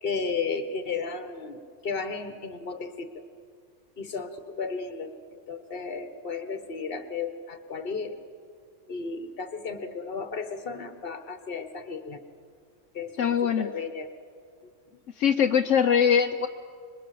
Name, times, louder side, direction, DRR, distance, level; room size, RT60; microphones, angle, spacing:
voice 1, 0.0-3.2 4.0-8.2 8.9-12.2 12.9-14.1 14.6-14.7, left 4 dB, 50° left, 8 dB, 1.5 m, -34 dB
voice 2, 13.2-13.7 15.2-16.5, left 7 dB, 75° left, 5 dB, 1.1 m, -22 dB
25.5 x 22.0 x 7.7 m, 2.1 s
omnidirectional pair, 1.3 m